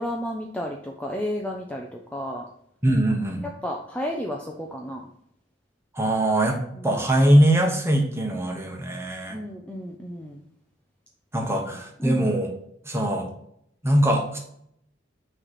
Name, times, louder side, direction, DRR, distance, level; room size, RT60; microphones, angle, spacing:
voice 1, 0.0-2.5 3.4-5.0 6.7-7.0 9.3-10.4 11.4-12.3, equal, 5° left, 0 dB, 0.6 m, -32 dB
voice 2, 2.8-3.4 5.9-6.6 6.8-9.4 11.3-12.5 12.8-13.3 13.8-14.4, right 1 dB, 15° right, 1 dB, 1.2 m, -21 dB
6.3 x 3.3 x 5.8 m, 0.71 s
head